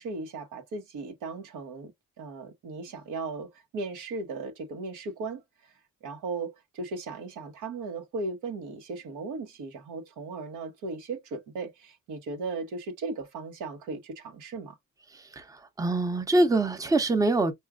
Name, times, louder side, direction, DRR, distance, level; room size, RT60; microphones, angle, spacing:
voice 1, 0.0-1.9 2.2-5.4 6.0-14.7, right 3 dB, 85° right, 1.1 m, -37 dB
voice 2, 15.1-17.5, right 2 dB, 10° right, 0.7 m, -25 dB
4.7 x 2.4 x 2.3 m
cardioid pair, 90°, 30 cm